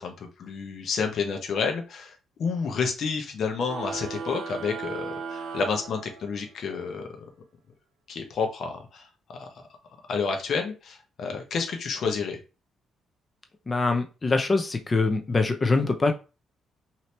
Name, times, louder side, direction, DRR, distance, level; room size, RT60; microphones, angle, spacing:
voice 1, 0.0-7.0 8.1-9.5 10.1-12.4, left 5 dB, 60° left, 0.9 m, -30 dB
sound 1, 3.6-6.6, right 5 dB, 80° right, 0.7 m, -37 dB
voice 2, 13.7-16.1, left 3 dB, 30° left, 0.7 m, -24 dB
2.8 x 2.8 x 3.3 m
cardioid pair, 90°, 0 cm